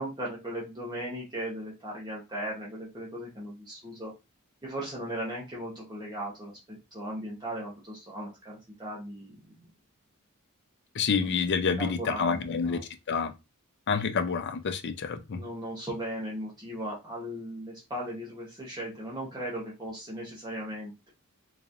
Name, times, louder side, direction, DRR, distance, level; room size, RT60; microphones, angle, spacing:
voice 1, 0.0-4.1 4.6-9.5 11.0-11.1 11.8-12.8 15.3-21.1, right 1 dB, 20° right, 1.0 m, -37 dB
voice 2, 11.0-12.8 13.1-13.3 13.9-15.4, left 5 dB, 50° left, 0.5 m, -28 dB
3.9 x 3.0 x 2.6 m
head